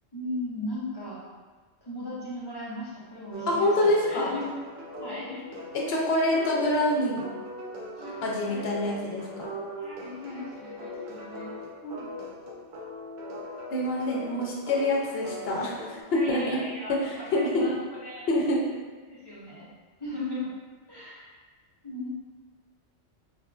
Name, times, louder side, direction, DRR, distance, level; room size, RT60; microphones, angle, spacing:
voice 1, 0.1-1.2 1.8-4.4 5.0-5.4 5.9-6.0 8.0-8.6 9.8-11.6 16.1-18.3 19.1-19.7 20.0-20.5 20.9-21.3 21.8-22.1, left 1 dB, 30° left, -8 dB, 0.5 m, -37 dB
sound 1, 3.3-16.0, equal, 55° right, 0.6 m, -40 dB
voice 2, 3.5-4.3 5.7-7.2 8.2-9.5 11.8-12.1 13.7-16.6 16.9-17.7 18.3-18.6, left 1 dB, 65° left, -2 dB, 0.8 m, -26 dB
3.5 x 2.5 x 2.3 m, 1.3 s
omnidirectional pair, 1.2 m